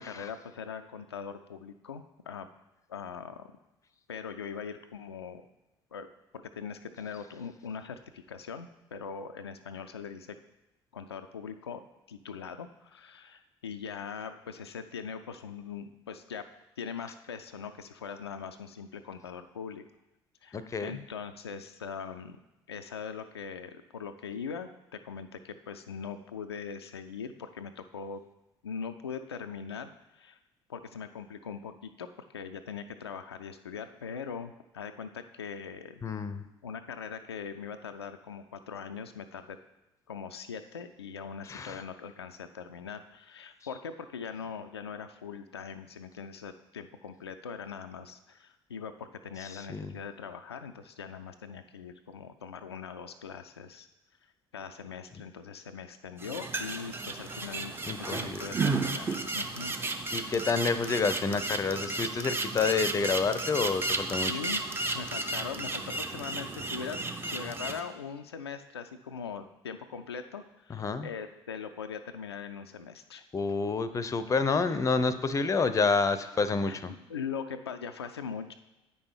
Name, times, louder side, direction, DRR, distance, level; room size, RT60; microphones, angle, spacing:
voice 1, 0.0-2.5 2.9-3.5 4.1-5.4 5.9-6.1 6.3-10.4 10.9-16.4 16.8-19.8 20.4-22.4 22.7-28.2 28.6-30.4 30.7-36.1 36.6-39.6 40.1-53.9 54.5-59.7 60.2-60.3 64.3-64.6 64.9-73.2 76.7-78.5, left 6 dB, 80° left, 7 dB, 0.4 m, -41 dB
voice 2, 20.5-20.9 36.0-36.4 41.5-41.8 49.5-49.9 57.9-58.4 60.1-64.3 70.7-71.1 73.3-76.9, left 4 dB, 25° left, 13 dB, 0.6 m, -29 dB
sound 1, 56.2-67.8, right 3 dB, 15° right, 0.7 m, -33 dB
8.5 x 5.4 x 4.5 m, 0.99 s
figure-of-eight pair, 55°, 13 cm